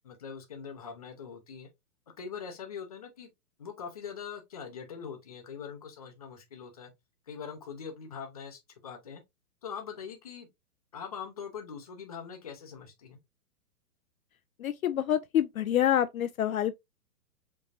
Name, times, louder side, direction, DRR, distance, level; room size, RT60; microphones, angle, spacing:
voice 1, 0.0-1.7 2.2-3.3 3.6-6.9 7.3-9.2 9.6-10.5 10.9-13.2, left 6 dB, 25° left, 0.7 m, -42 dB
voice 2, 14.6-16.7, left 10 dB, 65° left, 0.5 m, -27 dB
5.2 x 3.1 x 2.7 m
hypercardioid pair, 170°, 47 cm